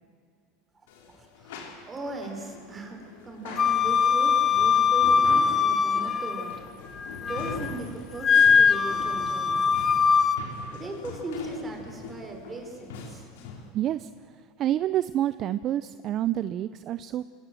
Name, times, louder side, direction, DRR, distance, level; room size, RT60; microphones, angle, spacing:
sound 1, 0.9-13.7, left 4 dB, 85° left, 3.6 m, -42 dB
voice 1, 1.2-6.7 7.2-9.9 10.7-13.2, right 2 dB, 20° right, 3 dB, 5.2 m, -38 dB
Wind instrument woodwind instrument, 3.6-6.6 7.0-7.7 8.2-10.4, left 6 dB, 30° left, 1.3 m, -22 dB
voice 2, 13.7-14.1 14.6-17.3, right 12 dB, 45° right, 14 dB, 0.6 m, -28 dB
24.5 x 18.5 x 7.8 m, 2.4 s
supercardioid pair, 110°, 0 cm